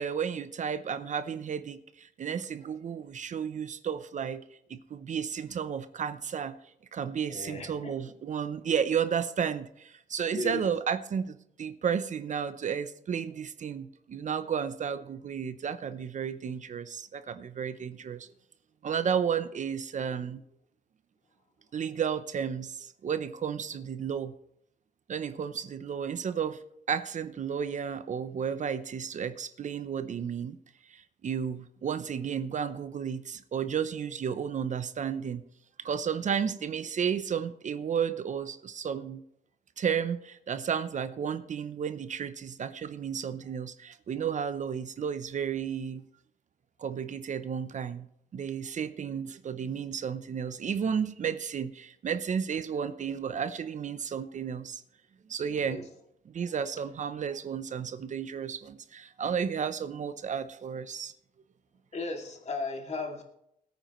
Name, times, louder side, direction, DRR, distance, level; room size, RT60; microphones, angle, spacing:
voice 1, 0.0-4.4 4.7-6.5 6.9-18.3 18.8-20.4 21.7-24.3 25.1-26.6 26.9-30.6 30.9-35.4 35.8-39.2 39.8-46.1 46.8-48.1 48.3-54.8 55.3-55.9 56.3-61.1, right 7 dB, 45° right, 12 dB, 0.6 m, -32 dB
voice 2, 7.3-7.9 10.3-10.6 55.6-55.8 61.9-63.2, left 3 dB, 40° left, 2 dB, 2.4 m, -35 dB
21.0 x 9.2 x 3.1 m, 0.76 s
cardioid pair, 130°, 17 cm